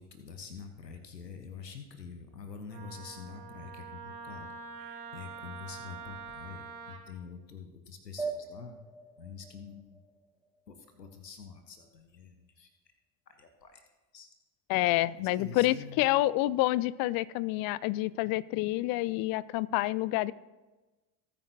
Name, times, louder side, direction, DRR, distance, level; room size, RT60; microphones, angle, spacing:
voice 1, 0.0-8.8 9.2-10.0 10.7-12.7 13.3-13.8 14.1-14.3 15.1-16.0, left 6 dB, 90° left, 7 dB, 1.0 m, -46 dB
Wind instrument woodwind instrument, 2.7-7.0, right 5 dB, 75° right, 1.7 m, -45 dB
sound 1, 8.2-11.1, right 4 dB, 5° right, 1.7 m, -41 dB
voice 2, 14.7-20.3, left 17 dB, 50° left, 20 dB, 0.5 m, -28 dB
19.0 x 8.8 x 2.7 m, 1.2 s
figure-of-eight pair, 60°, 48 cm